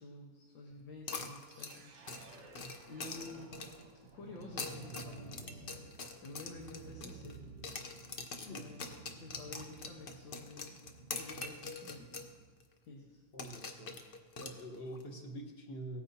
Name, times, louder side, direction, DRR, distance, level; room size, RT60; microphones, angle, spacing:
voice 1, 0.0-2.6 2.9-3.5 4.1-5.8 6.2-7.4 8.4-8.8 9.2-10.8 11.1-12.0 12.8-13.2, left 2 dB, 80° left, -2 dB, 2.1 m, -50 dB
sound 1, 1.1-3.9 4.4-7.4 7.6-12.3 12.6-12.7 13.4-15.0, left 4 dB, 55° left, 0.6 m, -44 dB
sound 2, 1.5-12.6, right 4 dB, 50° right, 1.1 m, -54 dB
voice 2, 13.3-14.0 14.4-16.0, right 1 dB, 35° left, 2 dB, 1.3 m, -45 dB
18.0 x 9.2 x 2.8 m, 1.4 s
omnidirectional pair, 2.1 m